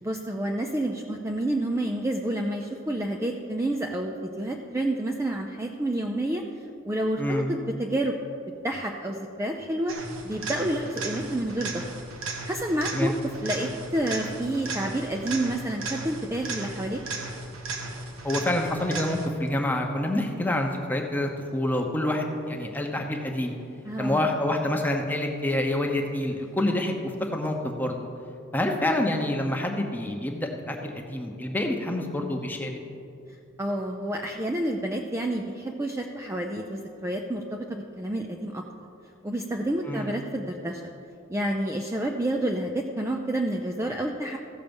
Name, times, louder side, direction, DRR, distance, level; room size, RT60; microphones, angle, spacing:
voice 1, 0.0-6.4 6.8-8.1 8.6-10.0 10.2-11.8 12.5-13.1 13.4-17.0 23.8-24.3 33.6-38.6 39.2-40.9 41.3-44.4, right 1 dB, 15° right, 2 dB, 0.4 m, -29 dB
voice 2, 7.2-7.5 12.9-13.1 18.2-23.5 24.0-28.1 28.5-32.8 39.8-40.2, left 1 dB, 10° left, 2 dB, 0.8 m, -27 dB
sound 1, 9.9-19.5 27.5-27.6, right 3 dB, 85° right, 1.2 m, -36 dB
15.0 x 6.6 x 5.3 m, 2.6 s
head